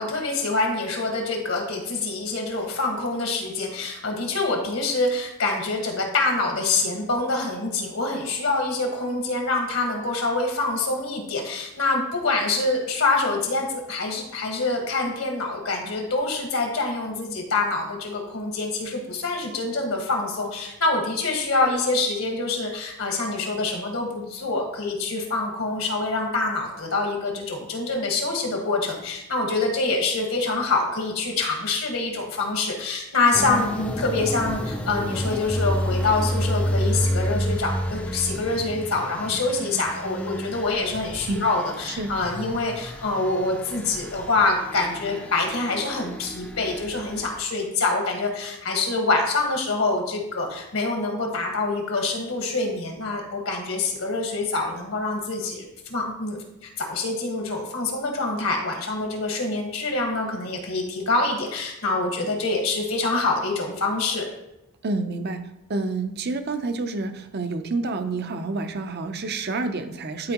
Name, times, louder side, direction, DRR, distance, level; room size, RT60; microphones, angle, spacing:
voice 1, 0.0-64.2, left 3 dB, 75° left, 2 dB, 1.5 m, -25 dB
sound 1, 33.3-47.4, equal, 5° left, 0.4 m, -30 dB
voice 2, 64.8-70.3, right 3 dB, 45° right, 8 dB, 0.6 m, -28 dB
11.5 x 4.4 x 2.9 m, 0.88 s
head